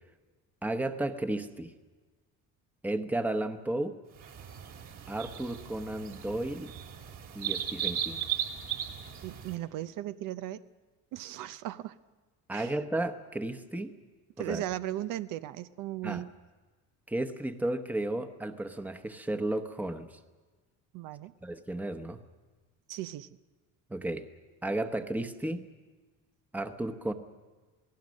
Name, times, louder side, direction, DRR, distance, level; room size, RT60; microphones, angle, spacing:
voice 1, 0.6-1.7 2.8-4.0 5.1-6.7 7.3-8.2 12.5-13.9 14.4-14.6 16.0-16.3 17.1-20.2 21.4-22.2 23.9-24.2 24.6-25.6 26.5-27.1, right 1 dB, 5° right, 7 dB, 1.0 m, -33 dB
sound 1, 4.2-9.5, right 10 dB, 60° right, 3.1 m, -37 dB
voice 2, 9.2-10.6 11.1-12.0 12.5-12.7 14.4-16.3 20.9-21.3 22.9-23.3, right 14 dB, 75° right, 13 dB, 0.7 m, -37 dB
27.5 x 19.0 x 6.4 m, 1.3 s
cardioid pair, 150°, 32 cm